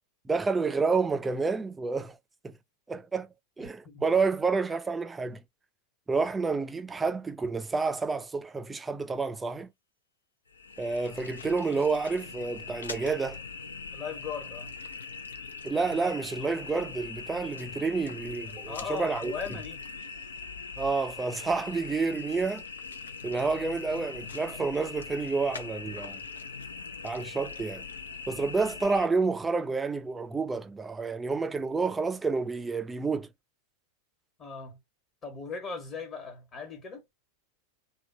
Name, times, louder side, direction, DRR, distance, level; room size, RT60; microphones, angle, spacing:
voice 1, 0.2-2.2 2.4-2.5 2.9-3.3 3.6-5.4 6.1-9.7 10.8-13.4 15.6-19.3 20.8-22.6 23.2-26.2 27.0-27.9 28.3-33.3, right 4 dB, 10° right, 0.4 m, -29 dB
voice 2, 3.6-4.0 13.9-14.7 18.6-19.8 34.4-34.8 35.2-37.0, left 5 dB, 30° left, 1.2 m, -38 dB
sound 1, 10.5-29.1, left 5 dB, 70° left, 0.6 m, -41 dB
3.7 x 2.4 x 4.5 m
figure-of-eight pair, 90°, 0 cm